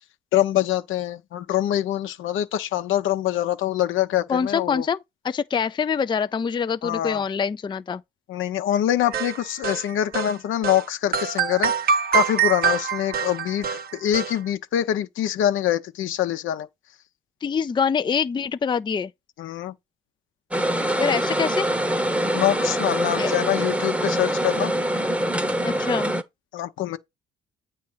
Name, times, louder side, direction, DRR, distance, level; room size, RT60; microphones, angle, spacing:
voice 1, 0.3-4.9 6.8-7.2 8.3-13.7 13.9-16.7 19.4-19.7 22.3-25.0 26.5-27.0, left 11 dB, 80° left, 0.8 m, -24 dB
voice 2, 4.3-8.0 17.4-19.1 21.0-21.7 23.2-23.3 25.6-26.1, left 6 dB, 25° left, 0.4 m, -25 dB
sound 1, 9.1-10.3 10.6-10.8 11.1-14.3, right 7 dB, 50° right, 0.8 m, -24 dB
sound 2, 20.5-26.2, right 1 dB, 5° right, 0.9 m, -24 dB
8.6 x 3.2 x 5.5 m
cardioid pair, 90°, 20 cm